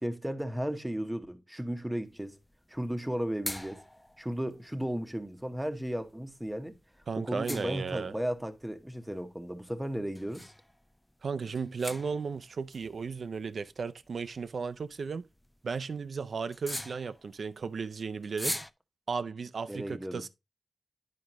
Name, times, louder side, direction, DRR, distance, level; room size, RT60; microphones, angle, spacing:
voice 1, 0.0-2.4 2.7-3.8 4.2-6.8 7.2-10.5 19.7-20.2, equal, 10° right, 1.0 m, -35 dB
sound 1, 2.1-18.7, left 1 dB, 10° left, 0.3 m, -45 dB
voice 2, 7.1-8.1 11.2-15.2 15.6-18.6 19.1-20.3, right 5 dB, 70° right, 0.4 m, -35 dB
9.6 x 5.1 x 2.9 m
cardioid pair, 70°, 0 cm